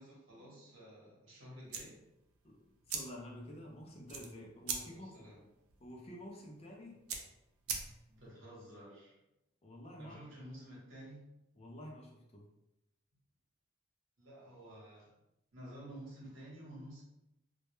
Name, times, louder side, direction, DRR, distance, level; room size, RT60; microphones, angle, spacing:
voice 1, 0.0-2.0 4.7-5.4 8.0-9.2 10.0-11.3 14.2-15.1 15.5-17.0, right 1 dB, 60° right, -5 dB, 0.9 m, -52 dB
sound 1, 1.6-8.3, right 5 dB, 85° right, 0.4 m, -44 dB
voice 2, 2.9-5.1 5.8-7.0 9.6-10.2 11.5-12.4, left 1 dB, 30° left, -1 dB, 0.4 m, -49 dB
2.2 x 2.1 x 3.0 m, 0.90 s
head